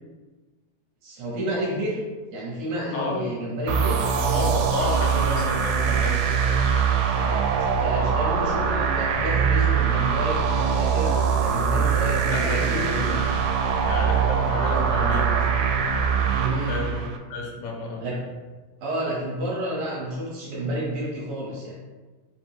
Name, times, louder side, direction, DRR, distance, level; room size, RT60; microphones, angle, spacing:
voice 1, 1.0-2.0 2.3-4.0 7.1-13.2 16.4-16.8 18.0-18.2 18.8-21.8, right 1 dB, 65° right, -5 dB, 2.0 m, -30 dB
voice 2, 2.9-3.3 4.1-6.2 12.3-13.4 13.8-15.4 16.7-18.2, left 2 dB, 80° left, -1 dB, 2.0 m, -31 dB
sound 1, 3.7-17.2, right 6 dB, 85° right, 2.1 m, -22 dB
5.2 x 2.2 x 4.5 m, 1.3 s
omnidirectional pair, 3.6 m